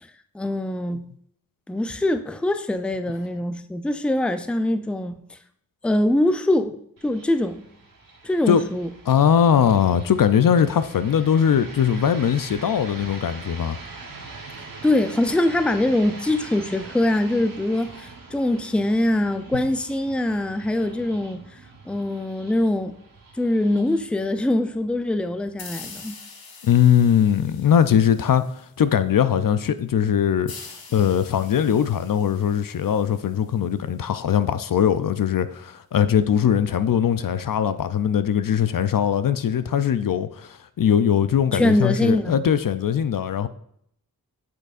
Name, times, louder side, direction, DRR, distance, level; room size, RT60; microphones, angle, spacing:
voice 1, 0.3-1.0 1.7-5.4 5.8-6.8 7.0-7.6 8.2-8.9 14.6-21.4 21.9-22.9 23.4-26.2 41.5-42.4, left 1 dB, 5° left, 0.4 m, -23 dB
sound 1, 7.0-25.9, right 3 dB, 65° right, 1.1 m, -43 dB
voice 2, 9.1-13.8 26.6-28.4 28.8-30.5 30.9-43.5, left 8 dB, 65° left, 0.5 m, -20 dB
sound 2, 25.6-29.0 30.5-34.0, left 4 dB, 80° left, 1.0 m, -44 dB
8.4 x 6.7 x 2.5 m
wide cardioid pair, 60°, 36 cm